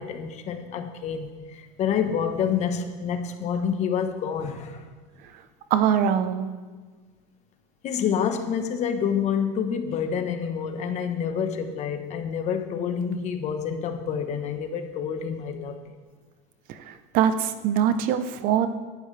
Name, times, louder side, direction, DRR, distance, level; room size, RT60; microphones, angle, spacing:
voice 1, 0.0-4.9 7.8-15.9, left 7 dB, 40° left, 7 dB, 1.3 m, -28 dB
voice 2, 5.7-6.5 17.1-18.7, right 9 dB, 55° right, 10 dB, 0.9 m, -22 dB
18.0 x 11.5 x 3.4 m, 1.4 s
supercardioid pair, 140°, 18 cm